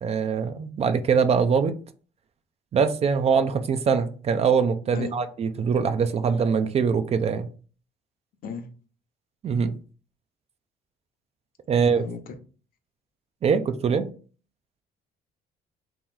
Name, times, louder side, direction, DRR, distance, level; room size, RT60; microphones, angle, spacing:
voice 1, 0.0-1.7 2.7-7.5 9.4-9.7 11.7-12.0 13.4-14.1, right 6 dB, 40° right, 0.4 m, -23 dB
voice 2, 11.7-12.3, left 5 dB, 60° left, 0.8 m, -35 dB
3.0 x 3.0 x 3.7 m
cardioid pair, 110°, 17 cm